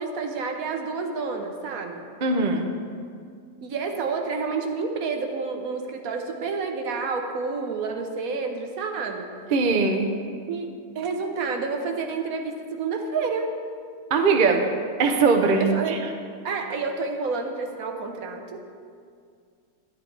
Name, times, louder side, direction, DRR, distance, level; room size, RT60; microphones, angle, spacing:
voice 1, 0.0-2.0 3.6-9.3 10.5-10.7 10.9-13.5 15.7-16.0 16.4-18.6, right 4 dB, 70° right, 4 dB, 1.3 m, -29 dB
voice 2, 2.2-2.7 9.5-10.2 14.1-14.7 15.0-16.0, right 4 dB, 45° right, 4 dB, 0.7 m, -20 dB
11.0 x 10.5 x 3.3 m, 2.2 s
omnidirectional pair, 1.6 m